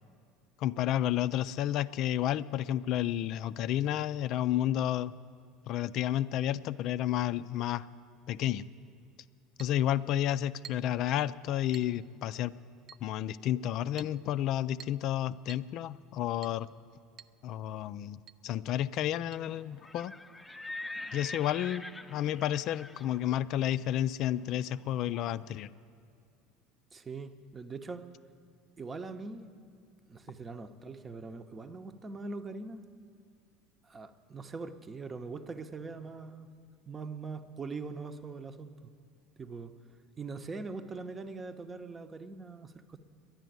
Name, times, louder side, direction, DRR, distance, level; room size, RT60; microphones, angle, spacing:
voice 1, 0.6-5.1 5.7-7.9 8.3-8.6 9.6-12.5 13.0-16.7 17.4-20.2 21.1-25.7, left 12 dB, 55° left, 15 dB, 0.4 m, -31 dB
Chink clink, 9.6-9.8 10.6-11.0 11.7-12.0 12.9-13.1 14.0-14.2 14.8-15.1 15.5-15.7 16.4-16.6 17.2-17.4 17.6-17.7 18.3-18.4 19.3-19.4, right 9 dB, 45° right, 0.4 m, -50 dB
Livestock farm animals working animals, 19.7-25.5, left 2 dB, 5° left, 0.7 m, -45 dB
voice 2, 26.9-28.1 28.8-29.5 30.1-32.8 33.9-36.5 36.9-38.7 39.4-39.7 40.2-43.0, right 4 dB, 25° right, 10 dB, 0.8 m, -42 dB
11.0 x 10.5 x 9.3 m, 2.4 s
hypercardioid pair, 75°, 0 cm